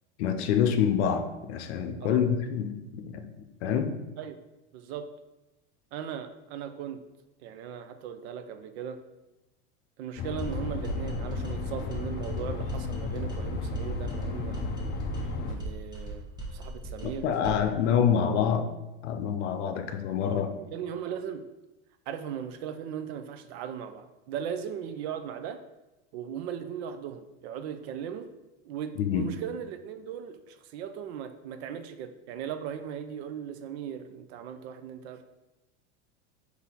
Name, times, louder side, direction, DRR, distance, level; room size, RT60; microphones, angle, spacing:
voice 1, 0.2-3.2 3.6-3.9 17.0-18.7 19.0-20.5 29.0-29.3, left 8 dB, 70° left, 7 dB, 0.6 m, -26 dB
voice 2, 4.7-5.1 5.9-7.0 7.4-9.0 10.0-17.3 20.6-21.5 22.1-25.6 26.1-28.3 28.6-35.2, right 8 dB, 65° right, 9 dB, 0.5 m, -38 dB
sound 1, 10.2-15.6, left 3 dB, 30° left, 0.4 m, -33 dB
sound 2, 10.4-17.8, right 1 dB, 10° right, 0.9 m, -40 dB
4.0 x 2.8 x 4.3 m, 1.0 s
supercardioid pair, 115°, 35 cm